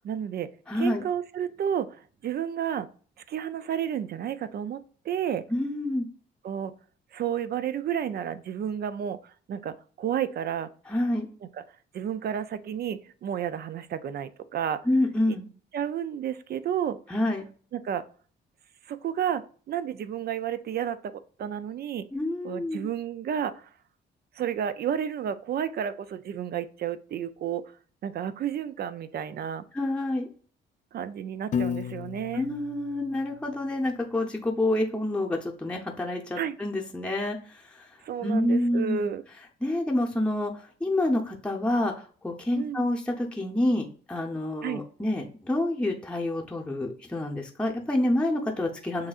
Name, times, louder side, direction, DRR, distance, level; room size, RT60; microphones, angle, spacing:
voice 1, 0.0-0.5 0.7-2.9 3.3-5.4 6.4-6.7 7.1-10.7 11.9-14.8 15.7-17.0 17.7-18.0 18.9-22.1 22.4-23.7 24.4-27.6 28.0-29.6 30.9-32.5 36.4-36.5 38.0-39.2 42.6-42.9 44.6-44.8, right 9 dB, 55° right, 14 dB, 0.4 m, -31 dB
voice 2, 0.7-1.0 5.5-6.1 10.9-11.3 14.8-15.5 17.1-17.4 22.1-22.9 29.7-30.3 32.3-37.9 38.2-39.1 39.6-49.1, left 1 dB, 5° left, 0 dB, 0.7 m, -28 dB
Piano, 31.5-33.7, left 7 dB, 40° left, 0.4 m, -33 dB
7.3 x 2.7 x 2.4 m, 0.42 s
cardioid pair, 90°, 20 cm